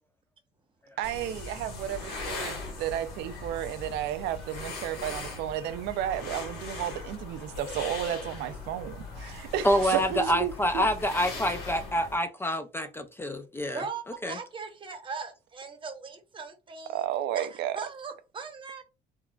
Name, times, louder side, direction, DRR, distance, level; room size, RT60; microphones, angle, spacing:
sound 1, 1.0-12.2, left 3 dB, 75° left, 1.4 m, -39 dB
voice 1, 1.0-10.9 16.9-17.8, right 11 dB, 80° right, 0.4 m, -33 dB
voice 2, 9.6-13.8 14.2-14.4, equal, 15° left, 0.3 m, -27 dB
voice 3, 13.7-17.1 17.3-18.8, right 5 dB, 30° right, 0.8 m, -39 dB
3.6 x 2.2 x 2.3 m
cardioid pair, 110°, 17 cm